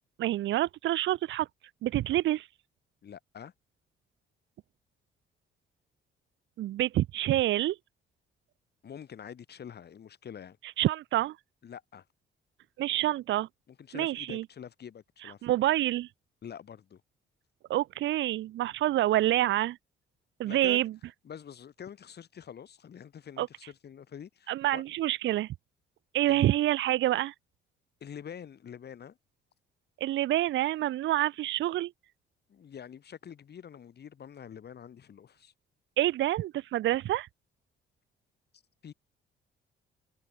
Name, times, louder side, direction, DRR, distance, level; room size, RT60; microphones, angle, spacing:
voice 1, 0.2-1.5 1.8-2.5 6.6-7.8 10.8-11.4 12.8-13.5 13.9-14.4 15.2-16.1 17.7-19.8 20.4-20.9 23.4-23.5 24.5-25.5 26.1-27.3 30.0-31.9 36.0-37.3, right 14 dB, 70° right, 0.6 m, -27 dB
voice 2, 3.0-3.5 8.8-10.6 11.6-12.0 13.8-15.6 16.4-17.0 20.4-20.8 21.2-24.8 26.3-26.5 28.0-29.2 32.5-35.5 38.8-38.9, left 8 dB, 55° left, 5.8 m, -46 dB
cardioid pair, 90°, 20 cm